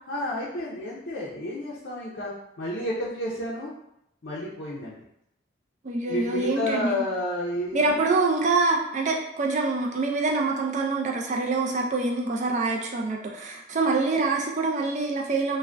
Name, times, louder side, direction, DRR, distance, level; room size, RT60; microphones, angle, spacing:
voice 1, 0.1-3.7 4.2-5.0 6.1-8.0, left 1 dB, 60° left, -7 dB, 0.5 m, -31 dB
voice 2, 5.8-7.0 7.7-15.6, right 3 dB, 40° right, 0 dB, 0.4 m, -25 dB
2.5 x 2.1 x 3.2 m, 0.81 s
head